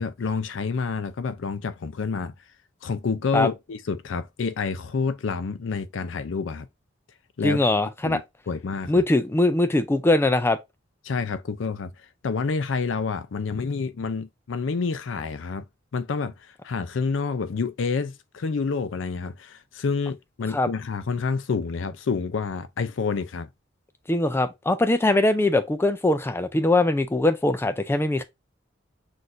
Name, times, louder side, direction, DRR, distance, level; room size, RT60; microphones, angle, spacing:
voice 1, 0.0-2.3 2.8-6.7 7.4-7.7 8.0-9.0 11.0-11.9 12.2-15.6 15.9-16.3 16.6-23.5, left 5 dB, 80° left, 0.5 m, -28 dB
voice 2, 7.4-8.2 8.9-10.6 20.5-20.7 24.1-28.2, left 2 dB, 10° left, 0.4 m, -21 dB
6.1 x 2.6 x 2.5 m
head